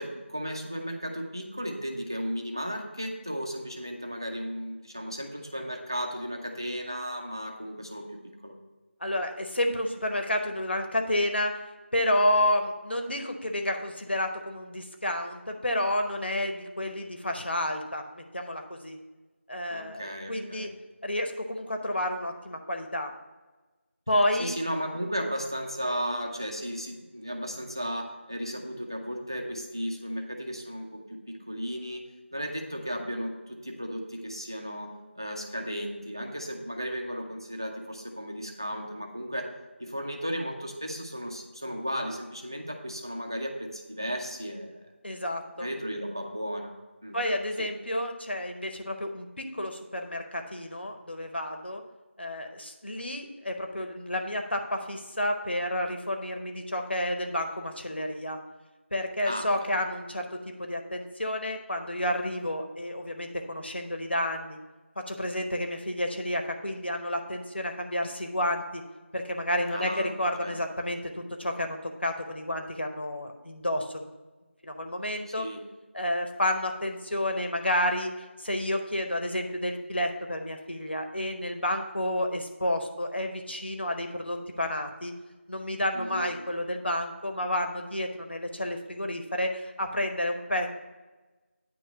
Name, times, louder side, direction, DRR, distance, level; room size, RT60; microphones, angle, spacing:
voice 1, 0.0-8.5 19.7-20.7 24.4-32.0 32.3-39.5 39.8-44.8 45.6-46.7 47.0-47.2 47.6-47.7 59.2-59.8 69.7-70.1 70.4-70.6 75.4-75.6 85.9-86.3, equal, 20° right, 2 dB, 0.5 m, -35 dB
voice 2, 9.0-11.6 11.9-19.0 19.5-20.7 21.0-23.1 24.1-24.5 45.0-45.7 47.1-51.8 52.2-58.4 58.9-64.6 65.0-68.8 69.1-74.1 74.6-75.5 75.9-78.1 78.4-85.1 85.5-90.7, left 1 dB, 55° left, 4 dB, 0.9 m, -30 dB
9.1 x 3.1 x 6.6 m, 1.2 s
figure-of-eight pair, 175°, 7 cm